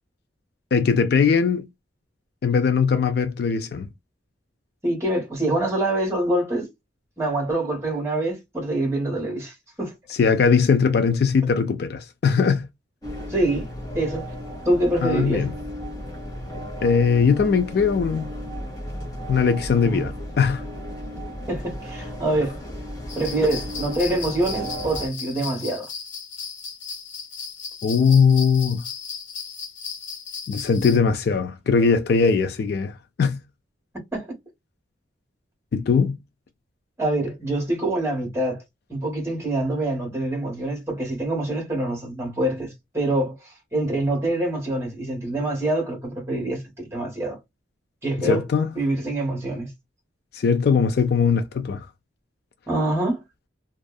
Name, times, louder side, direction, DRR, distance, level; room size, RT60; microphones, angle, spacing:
voice 1, 0.7-1.7 2.4-3.9 10.1-12.7 15.0-15.5 16.8-18.3 19.3-20.7 27.8-28.8 30.5-33.4 35.7-36.2 48.2-48.7 50.3-51.8, left 5 dB, 55° left, 0.3 m, -20 dB
voice 2, 4.8-6.7 7.2-9.9 13.3-13.7 13.9-14.2 14.6-15.4 19.7-20.1 21.5-22.6 23.1-25.9 34.1-34.3 37.0-38.6 38.9-47.4 48.0-48.4 48.7-49.7 52.7-53.2, right 1 dB, 15° right, 1.3 m, -25 dB
sound 1, 13.0-25.1, equal, 20° left, 1.0 m, -34 dB
sound 2, 23.1-31.0, left 5 dB, 85° left, 1.2 m, -36 dB
2.6 x 2.4 x 2.2 m
head